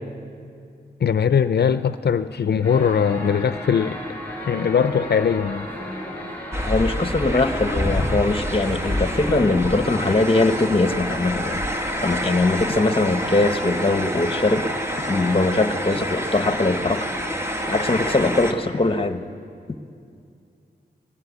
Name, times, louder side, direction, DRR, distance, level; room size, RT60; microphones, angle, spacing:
voice 1, 1.0-4.0 4.5-5.7 7.3-7.4, left 7 dB, 75° left, 12 dB, 0.5 m, -20 dB
sound 1, 2.6-9.5, left 1 dB, 10° left, 7.5 m, -34 dB
sound 2, 6.5-18.5, equal, 15° right, 2.0 m, -27 dB
voice 2, 6.7-11.6 12.0-14.7 15.1-17.1 17.7-19.2, left 2 dB, 30° left, 9 dB, 1.1 m, -21 dB
21.5 x 19.0 x 8.2 m, 2.4 s
wide cardioid pair, 100°, 17 cm